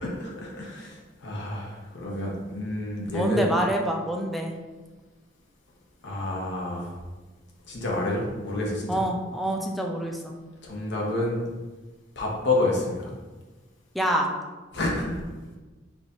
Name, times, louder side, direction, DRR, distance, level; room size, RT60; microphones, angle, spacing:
voice 1, 0.0-3.5 6.0-6.9 7.7-9.0 10.6-11.5 12.2-13.1 14.7-15.2, left 2 dB, 65° left, -2 dB, 1.0 m, -29 dB
voice 2, 3.1-4.6 8.9-10.4 13.9-14.3, right 1 dB, ahead, 0 dB, 0.5 m, -26 dB
4.8 x 2.5 x 4.1 m, 1.3 s
head